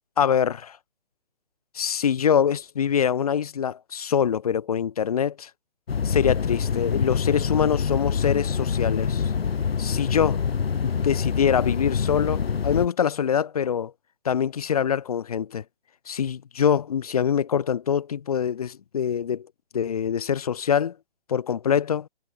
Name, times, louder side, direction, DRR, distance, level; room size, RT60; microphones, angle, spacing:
voice 1, 0.2-0.8 1.7-5.5 6.0-9.3 9.8-10.4 10.8-13.9 14.2-15.6 16.1-19.5 19.7-20.9 21.3-22.1, left 8 dB, 40° left, 2.5 m, -24 dB
sound 1, 5.9-12.9, left 6 dB, 75° left, 1.3 m, -25 dB
hypercardioid pair, 170°, 30 cm